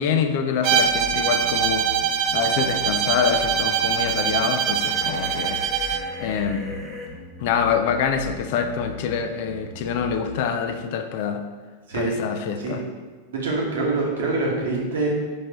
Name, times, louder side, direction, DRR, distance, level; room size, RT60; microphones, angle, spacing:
voice 1, 0.0-1.9 2.3-5.6 6.2-6.8 7.4-11.4 11.9-12.8, left 7 dB, 50° left, 7 dB, 0.3 m, -25 dB
Bowed string instrument, 0.6-6.1, right 7 dB, 40° right, 0.3 m, -23 dB
sound 1, 0.8-10.4, left 2 dB, 85° left, 1.2 m, -39 dB
sound 2, 4.8-7.1, left 2 dB, 25° right, 0.8 m, -39 dB
voice 2, 13.3-15.1, right 3 dB, 60° right, -3 dB, 1.1 m, -25 dB
5.2 x 3.1 x 2.9 m, 1.4 s
figure-of-eight pair, 90°, 0 cm